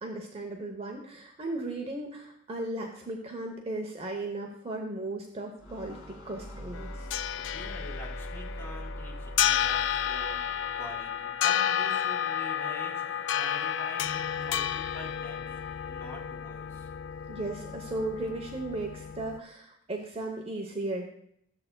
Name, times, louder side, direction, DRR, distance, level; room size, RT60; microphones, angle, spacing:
voice 1, 0.0-7.1 17.3-21.1, right 2 dB, 30° right, 1 dB, 0.9 m, -36 dB
sound 1, 5.6-11.3, equal, 85° left, 1.9 m, -42 dB
sound 2, 6.7-19.4, left 9 dB, 65° left, 0.3 m, -31 dB
voice 2, 7.4-10.4 10.8-16.9, left 1 dB, 15° left, -4 dB, 2.5 m, -45 dB
13.5 x 7.7 x 2.2 m, 0.72 s
head